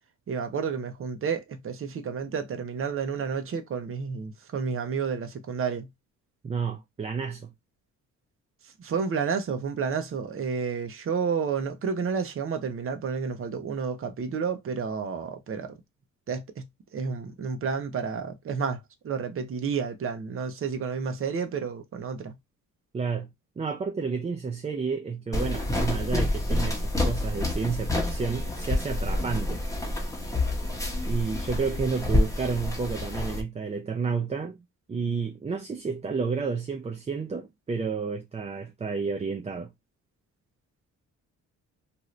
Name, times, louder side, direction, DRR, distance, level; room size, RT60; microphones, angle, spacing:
voice 1, 0.3-5.9 8.8-15.8 16.3-16.6 16.9-18.8 19.0-22.3, right 6 dB, 45° right, 0.8 m, -30 dB
voice 2, 6.4-7.5 22.9-23.3 23.6-29.6 31.1-34.6 34.9-39.7, right 5 dB, 20° right, 0.5 m, -31 dB
sound 1, 25.3-33.4, left 1 dB, 10° left, 1.0 m, -28 dB
2.7 x 2.5 x 3.1 m
cardioid pair, 90°, 30 cm